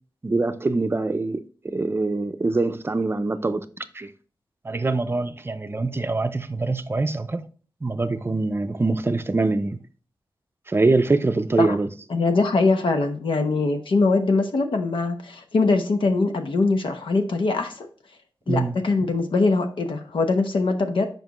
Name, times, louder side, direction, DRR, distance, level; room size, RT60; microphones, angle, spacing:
voice 1, 0.2-3.6 3.9-4.1 4.6-7.4 7.8-9.8 10.7-11.9 18.5-18.8, right 3 dB, 30° right, 0.5 m, -24 dB
voice 2, 12.1-17.9 18.5-21.1, left 3 dB, 85° left, 1.0 m, -22 dB
7.3 x 5.3 x 3.0 m
wide cardioid pair, 120°, 8 cm